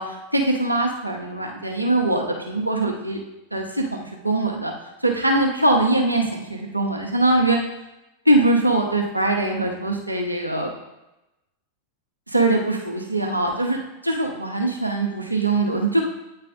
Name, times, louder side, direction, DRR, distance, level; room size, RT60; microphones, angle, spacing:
voice 1, 0.0-3.2 3.5-4.7 5.0-7.6 8.3-10.7 12.3-16.0, right 2 dB, 85° right, 1 dB, 0.9 m, -22 dB
8.8 x 3.4 x 3.6 m, 0.95 s
figure-of-eight pair, 90°, 0 cm